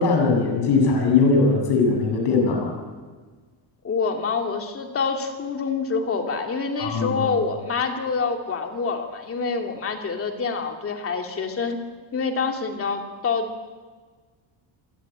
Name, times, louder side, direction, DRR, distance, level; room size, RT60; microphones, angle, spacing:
voice 1, 0.0-2.7 6.8-7.2, left 4 dB, 55° left, 1 dB, 7.6 m, -20 dB
voice 2, 3.8-11.8 12.1-13.5, left 5 dB, 30° left, 4 dB, 2.4 m, -26 dB
27.5 x 23.0 x 8.8 m, 1.5 s
cardioid pair, 180°, 47 cm